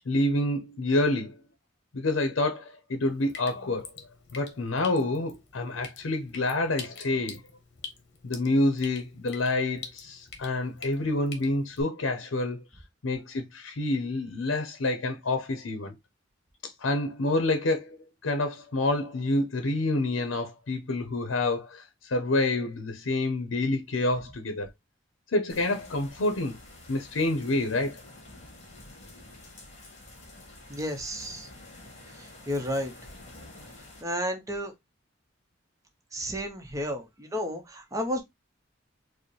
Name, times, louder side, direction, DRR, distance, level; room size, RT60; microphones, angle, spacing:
voice 1, 0.1-1.4 1.9-3.9 4.3-7.4 8.2-12.6 13.0-15.9 16.8-24.7 25.3-26.6 26.9-28.0, left 2 dB, 85° left, 0.6 m, -28 dB
Drip, 3.0-11.8, left 5 dB, 60° left, 0.9 m, -46 dB
sound 1, 25.5-34.0, left 2 dB, 35° left, 1.6 m, -49 dB
voice 2, 30.7-31.5 32.2-32.9 34.0-34.7 36.1-38.2, equal, 15° right, 0.7 m, -32 dB
4.7 x 2.1 x 3.1 m
head